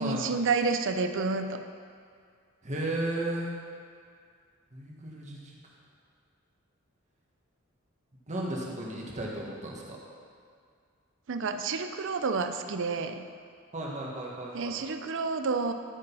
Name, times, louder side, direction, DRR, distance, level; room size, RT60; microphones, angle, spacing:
voice 1, 0.0-1.6 11.3-13.2 14.5-15.7, right 4 dB, 60° right, 8 dB, 0.6 m, -29 dB
voice 2, 2.6-3.5 4.7-5.4 8.3-10.0 13.7-14.8, right 1 dB, 35° right, -3 dB, 1.6 m, -34 dB
12.5 x 5.3 x 5.5 m, 2.2 s
head